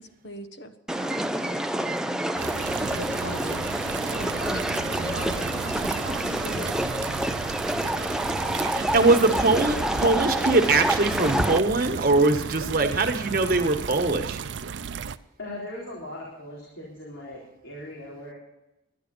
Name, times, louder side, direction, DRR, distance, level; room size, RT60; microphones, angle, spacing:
voice 1, 0.0-2.2 3.0-3.7 4.1-4.6 5.7-6.7, equal, 65° left, 8 dB, 1.3 m, -40 dB
sound 1, 0.9-11.6, right 1 dB, 5° right, 0.4 m, -28 dB
sound 2, 2.4-15.2, right 6 dB, 75° right, 0.5 m, -34 dB
voice 2, 5.0-5.5 15.4-18.3, left 1 dB, 85° left, -5 dB, 3.9 m, -39 dB
voice 3, 8.7-14.4, right 3 dB, 50° right, 5 dB, 1.4 m, -22 dB
12.0 x 11.0 x 6.8 m, 0.93 s
head